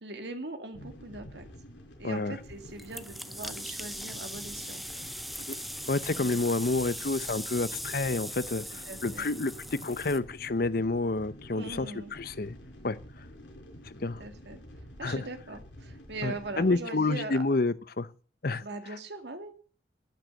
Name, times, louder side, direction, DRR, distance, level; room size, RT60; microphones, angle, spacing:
voice 1, 0.0-1.5 2.0-5.1 6.2-6.3 8.9-9.3 11.5-12.1 14.0-14.6 15.0-17.4 18.6-19.5, right 2 dB, 65° right, 7 dB, 2.1 m, -41 dB
sound 1, 0.7-16.7, equal, 75° left, 4.6 m, -49 dB
voice 2, 2.0-2.4 5.5-5.6 5.9-9.5 9.8-12.6 12.8-13.0 13.8-14.2 15.0-15.2 16.2-18.1 18.4-18.6, left 3 dB, 50° left, 15 dB, 0.8 m, -29 dB
sound 2, 2.8-10.2, equal, ahead, 0.6 m, -40 dB
12.0 x 9.2 x 8.1 m, 0.41 s
head